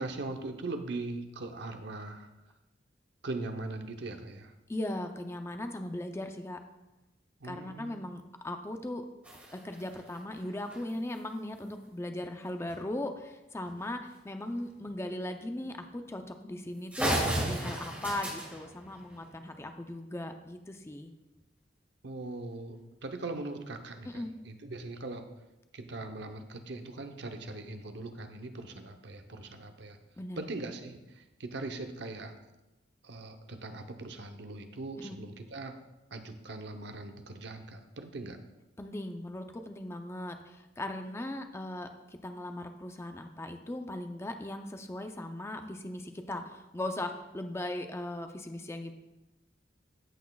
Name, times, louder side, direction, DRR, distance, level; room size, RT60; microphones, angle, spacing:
voice 1, 0.0-2.3 3.2-4.5 7.4-8.1 22.0-25.3 25.7-30.0 30.4-32.4 33.0-35.8 36.1-38.4, right 2 dB, 65° right, 6 dB, 0.8 m, -40 dB
voice 2, 4.7-6.6 7.4-9.1 9.5-21.1 24.0-24.4 30.2-30.4 35.0-35.2 38.8-41.9 42.2-48.9, left 1 dB, 15° left, 6 dB, 0.5 m, -38 dB
sound 1, 9.2-11.2 12.7-12.8 13.1-13.2 13.6-13.8 14.7-14.9 15.6-15.7 16.2-16.3 16.6-16.7 16.9-19.6, right 1 dB, 10° right, 2.2 m, -35 dB
14.0 x 6.2 x 2.3 m, 1.0 s
head